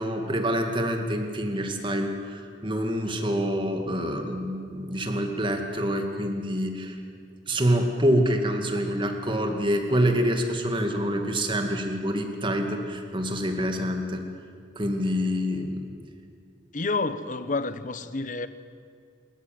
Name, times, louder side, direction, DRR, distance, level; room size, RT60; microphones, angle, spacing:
voice 1, 0.0-7.0 7.5-14.3 14.8-15.9, equal, 25° right, 4 dB, 2.2 m, -26 dB
voice 2, 16.7-18.5, left 3 dB, 40° left, 13 dB, 1.0 m, -29 dB
27.0 x 14.0 x 9.1 m, 2.3 s
head